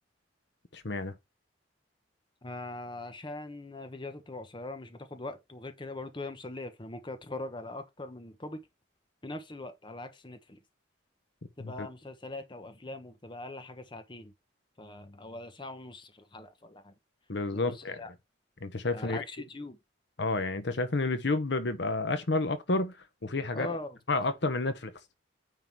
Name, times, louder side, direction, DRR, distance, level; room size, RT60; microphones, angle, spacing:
voice 1, 0.7-1.2 11.6-11.9 17.3-18.0 18.6-19.2 20.2-22.9 23.2-23.8 24.1-24.9, left 2 dB, 60° left, 0.9 m, -30 dB
voice 2, 2.4-8.6 9.2-10.6 11.6-14.3 14.8-16.9 17.5-18.1 18.9-19.8 23.5-24.0, left 2 dB, 25° left, 1.0 m, -41 dB
9.3 x 3.9 x 4.6 m
head